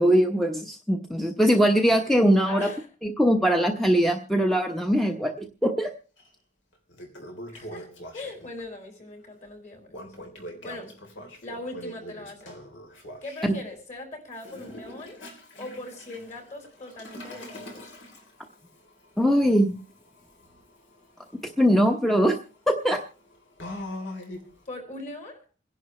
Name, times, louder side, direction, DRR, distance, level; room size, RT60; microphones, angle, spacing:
voice 1, 0.0-2.7 3.0-5.9 13.4-13.5 19.2-19.7 21.6-22.4 22.7-23.0, equal, ahead, 3 dB, 1.0 m, -21 dB
voice 2, 2.4-2.9 7.5-7.9 8.1-10.0 10.6-11.0 11.4-12.6 13.2-15.2 15.6-17.9 24.7-25.4, left 2 dB, 40° left, 4 dB, 4.6 m, -40 dB
Toilet flush, 6.2-6.3 6.7-8.6 9.9-13.5 14.3-24.7, left 1 dB, 70° left, 3.4 m, -43 dB
28.0 x 11.0 x 3.2 m, 0.35 s
head